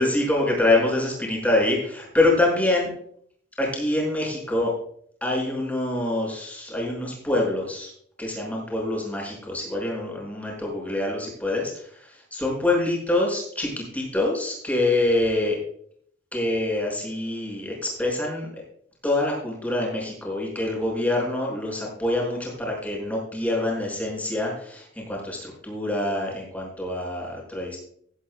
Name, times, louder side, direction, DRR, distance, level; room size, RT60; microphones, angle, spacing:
voice 1, 0.0-2.9 3.6-4.7 5.2-7.9 8.2-11.7 12.3-15.6 16.3-18.5 19.0-27.8, left 2 dB, 10° left, -2 dB, 5.9 m, -25 dB
17.0 x 12.0 x 2.3 m, 0.63 s
head